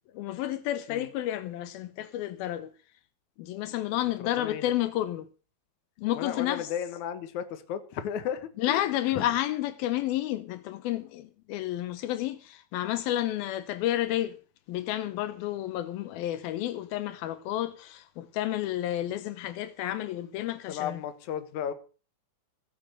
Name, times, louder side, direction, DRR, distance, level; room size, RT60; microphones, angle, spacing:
voice 1, 0.1-2.7 3.4-5.3 6.0-6.7 8.6-14.4 14.7-21.0, left 13 dB, 90° left, 2.9 m, -31 dB
voice 2, 4.2-4.7 6.2-9.3 20.7-21.7, left 9 dB, 60° left, 2.5 m, -34 dB
16.5 x 8.7 x 6.8 m
omnidirectional pair, 4.2 m